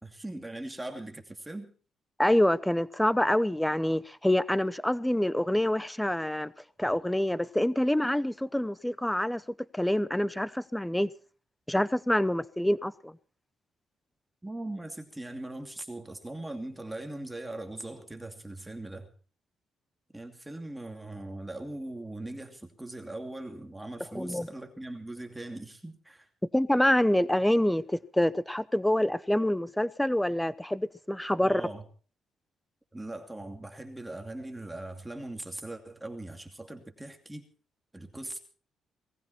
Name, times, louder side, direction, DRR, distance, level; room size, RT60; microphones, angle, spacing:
voice 1, 0.0-1.7 14.4-19.1 20.1-26.3 31.3-31.8 32.9-37.5 37.9-38.4, right 1 dB, 10° right, 2.6 m, -40 dB
voice 2, 2.2-6.5 6.8-9.4 9.7-11.1 11.7-13.1 24.1-24.5 26.5-31.6, left 1 dB, 5° left, 0.7 m, -26 dB
19.5 x 15.0 x 4.4 m
cardioid pair, 90°, 0 cm